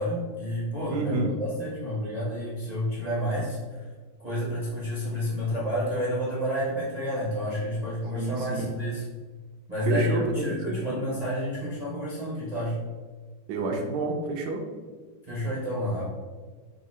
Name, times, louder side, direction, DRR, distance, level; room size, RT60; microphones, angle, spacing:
voice 1, 0.0-3.6 4.2-9.0 9.7-12.8 15.3-16.1, equal, 35° right, -7 dB, 0.7 m, -29 dB
voice 2, 0.9-1.3 8.1-8.7 9.8-11.0 13.5-14.6, right 2 dB, 70° right, 2 dB, 1.1 m, -29 dB
3.7 x 2.7 x 4.1 m, 1.4 s
omnidirectional pair, 2.0 m